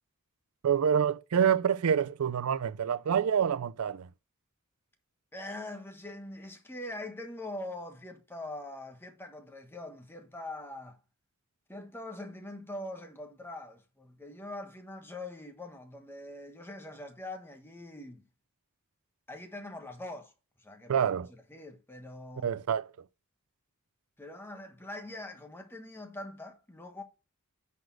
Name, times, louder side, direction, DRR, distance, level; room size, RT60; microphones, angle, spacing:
voice 1, 0.6-4.1 20.9-21.3 22.4-22.9, right 8 dB, 85° right, 0.4 m, -27 dB
voice 2, 5.3-11.0 11.7-18.3 19.3-20.3 20.6-22.5 24.2-27.0, left 1 dB, 10° left, 1.2 m, -43 dB
9.7 x 4.2 x 4.4 m
head